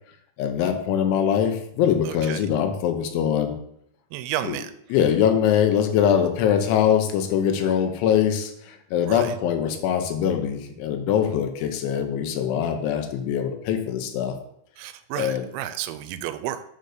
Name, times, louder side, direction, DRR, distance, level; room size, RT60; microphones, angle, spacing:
voice 1, 0.4-3.6 4.4-4.6 4.9-14.4 15.2-15.4, left 9 dB, 85° left, 6 dB, 3.3 m, -23 dB
voice 2, 2.0-2.4 4.1-4.7 9.0-9.4 14.8-16.6, right 12 dB, 85° right, 11 dB, 2.7 m, -32 dB
9.1 x 3.9 x 6.5 m, 0.73 s
omnidirectional pair, 5.3 m